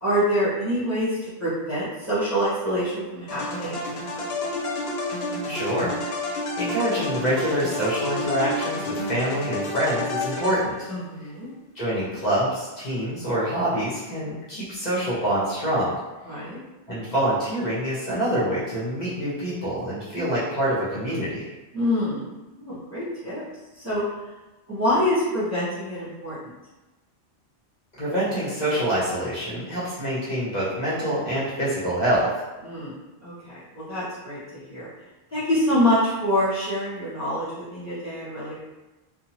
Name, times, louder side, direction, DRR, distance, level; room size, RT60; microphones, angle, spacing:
voice 1, 0.0-4.6 10.9-11.5 16.3-16.6 21.7-22.3 22.5-23.4 23.8-24.0 24.7-26.4 32.6-32.9 33.2-34.9 35.3-38.7, equal, 15° right, -13 dB, 0.9 m, -26 dB
sound 1, 3.3-11.0, left 2 dB, 75° left, 0.9 m, -30 dB
voice 2, 5.5-5.9 6.3-10.9 11.7-15.9 16.9-21.5 27.9-32.3, right 1 dB, 45° left, -10 dB, 1.0 m, -26 dB
2.7 x 2.2 x 2.8 m, 1.1 s
omnidirectional pair, 1.1 m